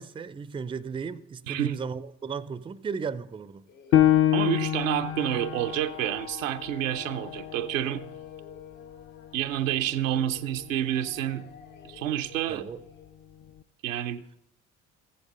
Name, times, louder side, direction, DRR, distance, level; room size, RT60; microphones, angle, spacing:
voice 1, 0.0-3.7 12.5-12.8, right 5 dB, 15° right, 0.4 m, -35 dB
voice 2, 1.5-1.8 4.3-8.1 9.3-11.5 11.8-12.6 13.8-14.4, right 12 dB, 80° right, 0.6 m, -29 dB
Singing, 3.7-13.1, left 5 dB, 75° left, 1.7 m, -53 dB
Piano, 3.9-9.1 9.6-9.7 10.3-10.8, left 12 dB, 40° left, 0.6 m, -27 dB
15.0 x 8.9 x 3.8 m
figure-of-eight pair, 50°, 39 cm